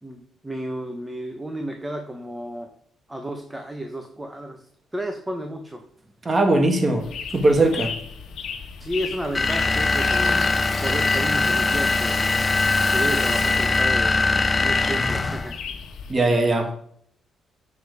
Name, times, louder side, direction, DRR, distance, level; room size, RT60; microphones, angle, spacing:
voice 1, 0.0-2.7 3.1-4.6 4.9-5.8 8.8-10.4 10.8-12.2 12.9-14.3 14.6-15.6, right 1 dB, 10° right, 1.0 m, -32 dB
voice 2, 6.2-7.1 7.3-7.9 16.1-16.7, right 2 dB, 25° right, 1.6 m, -19 dB
sound 1, 7.0-16.1, left 6 dB, 70° left, 1.4 m, -37 dB
Rattle (instrument), 9.0-14.1, left 1 dB, 5° left, 2.4 m, -38 dB
sound 2, 9.3-15.5, left 3 dB, 20° left, 0.7 m, -21 dB
7.3 x 6.3 x 4.8 m
cardioid pair, 90°, 0 cm